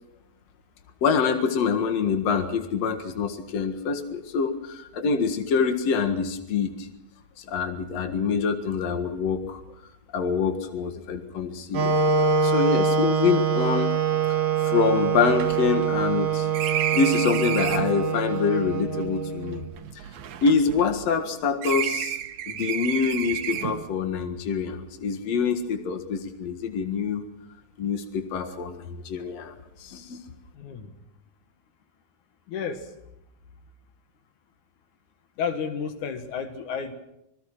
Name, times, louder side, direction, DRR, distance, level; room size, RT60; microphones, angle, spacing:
voice 1, 1.0-6.9 7.4-9.6 10.1-13.9 14.6-19.6 20.4-22.2 22.5-27.2 27.8-29.5 29.8-30.2, left 5 dB, 60° left, 7 dB, 2.8 m, -25 dB
Wind instrument woodwind instrument, 11.7-19.7, right 6 dB, 55° right, 1.4 m, -24 dB
sound 1, 13.9-14.0 14.2-14.3 14.7-18.0 18.9-21.3 21.6-23.9, right 10 dB, 75° right, 2.4 m, -32 dB
voice 2, 30.5-30.9 32.5-32.9 35.4-36.9, left 6 dB, 85° left, 8 dB, 2.9 m, -31 dB
26.0 x 20.0 x 6.1 m, 0.83 s
omnidirectional pair, 3.4 m